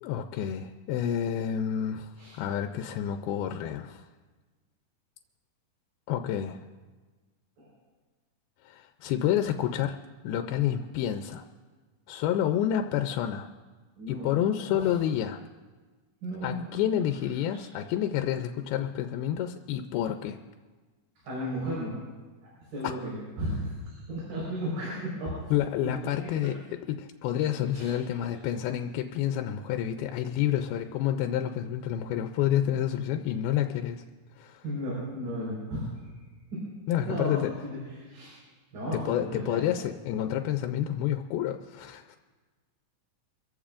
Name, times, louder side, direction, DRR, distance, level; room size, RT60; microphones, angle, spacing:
voice 1, 0.0-4.1 6.1-6.6 8.6-10.0 10.2-11.5 12.1-13.5 14.1-15.4 16.4-20.4 22.8-23.1 25.5-26.6 26.9-34.0 34.4-34.6 36.9-37.5 38.9-42.2, left 10 dB, 85° left, 6 dB, 2.5 m, -29 dB
voice 2, 14.0-14.9 16.2-16.7 21.2-21.9 22.4-25.3 27.7-27.9 28.3-28.4 34.6-36.1 37.1-38.3 38.7-39.7, equal, 70° right, -7 dB, 6.2 m, -34 dB
26.0 x 15.5 x 2.5 m, 1.4 s
omnidirectional pair, 4.3 m